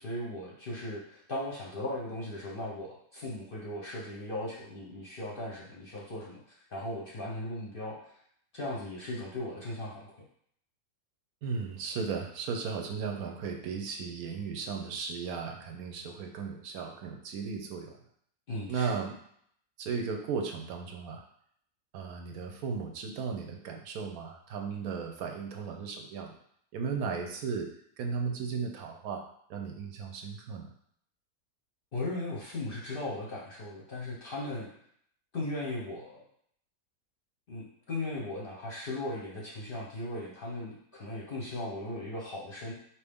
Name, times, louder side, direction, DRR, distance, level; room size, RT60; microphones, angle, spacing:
voice 1, 0.0-6.4 6.7-8.1 8.5-10.1 18.5-18.9 31.9-34.7 35.3-36.2 37.5-42.7, left 1 dB, 45° left, -4 dB, 0.8 m, -37 dB
voice 2, 11.4-18.0 18.7-19.1 19.8-21.2 21.9-26.4 26.7-27.7 28.0-29.2 29.5-30.7, right 5 dB, 75° right, 3 dB, 1.1 m, -35 dB
4.5 x 3.0 x 3.5 m, 0.67 s
omnidirectional pair, 1.6 m